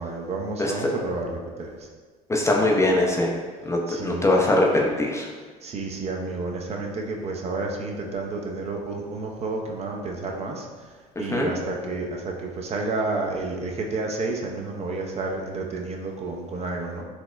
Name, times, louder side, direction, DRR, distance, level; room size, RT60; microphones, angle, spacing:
voice 1, 0.0-1.9 3.9-4.3 5.6-17.0, right 3 dB, 35° right, 0 dB, 0.5 m, -30 dB
voice 2, 2.3-3.3 3.7-5.3 11.3-11.5, left 1 dB, 15° left, -1 dB, 0.4 m, -21 dB
4.2 x 2.0 x 2.4 m, 1.4 s
supercardioid pair, 80°, 18 cm